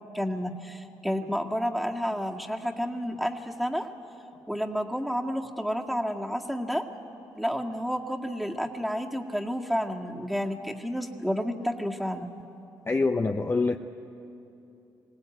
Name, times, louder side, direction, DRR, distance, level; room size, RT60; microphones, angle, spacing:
voice 1, 0.1-3.9 4.5-6.8 7.4-12.3, equal, ahead, 1 dB, 1.9 m, -30 dB
voice 2, 12.9-13.8, left 3 dB, 25° left, 5 dB, 0.8 m, -25 dB
22.0 x 18.0 x 9.2 m, 2.9 s
supercardioid pair, 65°, 9 cm